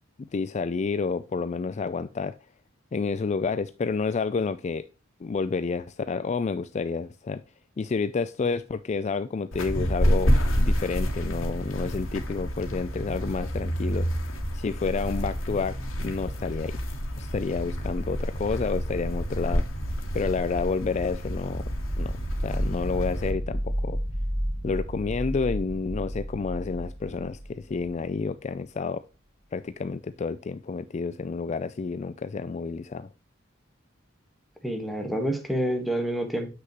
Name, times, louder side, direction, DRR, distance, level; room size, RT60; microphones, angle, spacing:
voice 1, 0.2-2.4 2.9-4.9 5.2-7.4 7.8-14.2 14.5-15.7 16.0-16.7 17.2-19.7 20.1-21.6 22.0-22.2 22.4-24.0 24.6-29.0 29.5-33.1, left 4 dB, 35° left, 13 dB, 0.3 m, -29 dB
sound 1, 9.5-23.3, equal, 80° left, 1.9 m, -28 dB
sound 2, 21.5-28.2, equal, 75° right, 3.9 m, -32 dB
voice 2, 34.6-36.5, right 1 dB, ahead, 5 dB, 1.4 m, -28 dB
7.8 x 6.3 x 3.0 m, 0.33 s
head